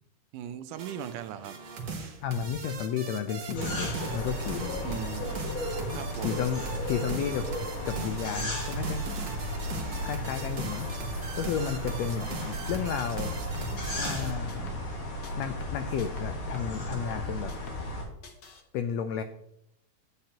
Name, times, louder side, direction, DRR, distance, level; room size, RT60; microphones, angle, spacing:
voice 1, 0.3-1.6 4.8-5.6 5.9-6.4 9.7-10.1, right 10 dB, 85° right, 11 dB, 2.2 m, -39 dB
sound 1, 0.7-14.3, right 4 dB, 55° right, 1.3 m, -37 dB
voice 2, 2.2-5.0 5.9-7.5 7.8-9.0 10.0-13.4 14.0-14.8 15.4-17.5 18.7-19.2, left 8 dB, 90° left, 8 dB, 1.5 m, -33 dB
sound 2, 3.5-18.0, left 1 dB, 45° left, 2.4 m, -36 dB
sound 3, 12.6-15.0 15.2-18.0 18.2-18.6, left 2 dB, 60° left, 1.1 m, -42 dB
10.5 x 8.1 x 2.9 m, 0.78 s
omnidirectional pair, 3.5 m